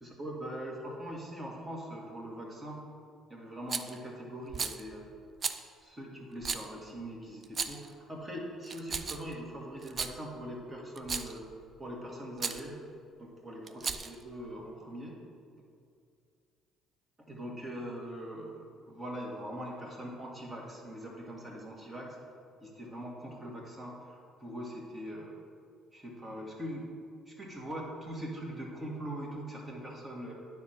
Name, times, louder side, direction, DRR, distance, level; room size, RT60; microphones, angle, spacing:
voice 1, 0.0-2.8 3.3-5.0 5.8-11.5 11.8-12.8 13.2-15.2 17.3-22.2 22.6-25.3 25.9-26.9 27.3-30.3, equal, 25° right, -2 dB, 2.2 m, -42 dB
Rattle, 3.7-4.0 4.5-4.8 5.4-5.6 6.4-6.7 7.4-7.9 8.6-9.3 9.8-10.1 11.0-11.4 12.4-12.6 13.7-14.2, right 5 dB, 40° right, 0.5 m, -35 dB
9.4 x 4.3 x 5.9 m, 2.3 s
supercardioid pair, 70°, 0 cm